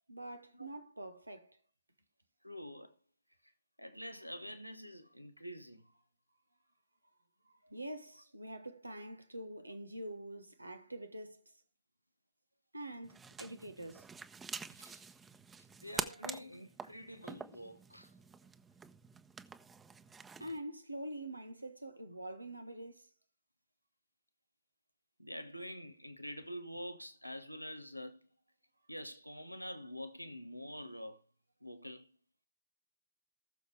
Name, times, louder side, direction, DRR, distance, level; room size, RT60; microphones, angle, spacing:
voice 1, 0.1-1.6 7.5-11.4 12.7-14.1 20.4-23.1, right 1 dB, 85° right, 1.2 m, -45 dB
voice 2, 2.4-2.9 3.8-5.8 7.6-7.7 14.7-15.1 15.8-18.1 25.2-28.3 28.9-31.2 31.6-32.1, equal, 90° left, 1.0 m, -46 dB
sound 1, 13.0-20.6, right 5 dB, 20° right, 1.1 m, -46 dB
19.5 x 7.0 x 3.3 m
figure-of-eight pair, 90°, 0 cm